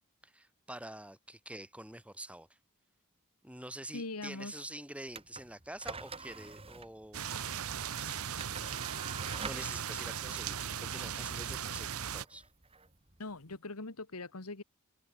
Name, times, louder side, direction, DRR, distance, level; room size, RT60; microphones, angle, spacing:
voice 1, 0.2-2.5 3.4-7.3 9.5-12.5, right 1 dB, 5° right, 7.1 m, -47 dB
voice 2, 3.9-4.7 13.2-14.6, left 3 dB, 85° left, 2.0 m, -41 dB
sound 1, 5.1-13.6, right 4 dB, 25° right, 3.2 m, -48 dB
sound 2, 7.1-12.2, right 8 dB, 75° right, 1.1 m, -38 dB
head